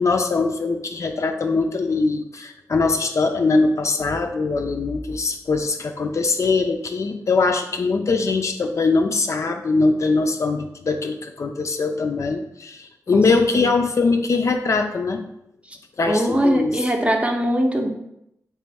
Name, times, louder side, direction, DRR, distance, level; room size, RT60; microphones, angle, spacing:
voice 1, 0.0-15.2 16.0-16.8, left 3 dB, 50° left, 5 dB, 0.4 m, -22 dB
voice 2, 13.1-13.7 15.7-15.8 16.1-17.9, equal, 20° right, 3 dB, 0.6 m, -22 dB
3.0 x 3.0 x 3.4 m, 0.80 s
supercardioid pair, 45°, 7 cm